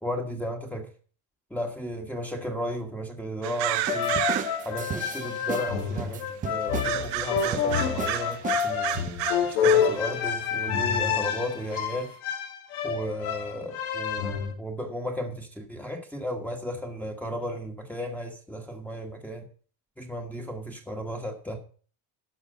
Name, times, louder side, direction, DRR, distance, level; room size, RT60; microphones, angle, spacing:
voice 1, 0.0-0.9 1.5-4.2 4.6-9.0 9.4-12.1 12.8-14.3 14.6-19.5 20.0-21.6, equal, 5° left, 1 dB, 1.3 m, -34 dB
sound 1, 3.4-4.8 5.4-5.5 6.8-10.0 10.3-10.4 11.1-11.2 11.8-11.9, right 14 dB, 80° right, 1.3 m, -31 dB
sound 2, 3.9-14.5, left 7 dB, 80° left, 2.0 m, -28 dB
sound 3, 3.9-5.7 6.0-7.0 7.4-7.7 8.0-8.1 8.4-9.1, right 8 dB, 20° right, 0.5 m, -35 dB
12.0 x 4.9 x 6.6 m, 0.43 s
cardioid pair, 140°, 42 cm